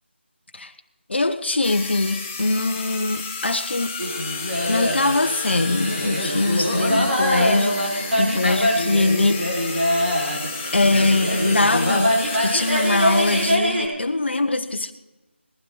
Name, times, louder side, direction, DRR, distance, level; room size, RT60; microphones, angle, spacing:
voice 1, 1.1-4.0 4.7-7.8 8.2-9.8 10.7-14.9, left 2 dB, 60° left, 1.2 m, -22 dB
sound 1, 1.6-13.6, left 4 dB, 10° left, 0.6 m, -32 dB
Carnatic varnam by Ramakrishnamurthy in Sri raaga, 4.0-13.9, equal, 65° right, 5.4 m, -24 dB
20.0 x 15.5 x 3.2 m
figure-of-eight pair, 175°, 7 cm